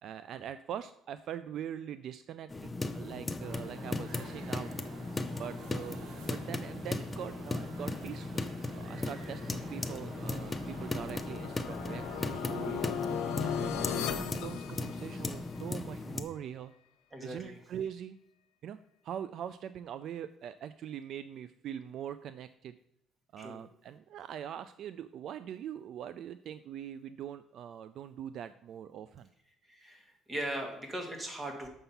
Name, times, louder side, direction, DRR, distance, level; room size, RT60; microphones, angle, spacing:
voice 1, 0.0-4.7 5.4-8.5 8.7-12.9 13.4-16.7 17.2-18.2 18.6-18.8 19.0-22.7 23.3-29.3, right 9 dB, 60° right, 13 dB, 0.3 m, -42 dB
sound 1, 2.5-16.2, left 2 dB, 15° left, 0.6 m, -37 dB
sound 2, 3.4-14.2, right 5 dB, 75° right, 1.1 m, -51 dB
sound 3, 10.3-15.5, left 8 dB, 80° left, 0.7 m, -37 dB
voice 2, 13.9-14.2 17.1-17.6 23.4-23.6 29.7-31.7, right 1 dB, 20° right, 3 dB, 1.9 m, -40 dB
6.7 x 5.5 x 5.7 m, 0.77 s
cardioid pair, 120°, 0 cm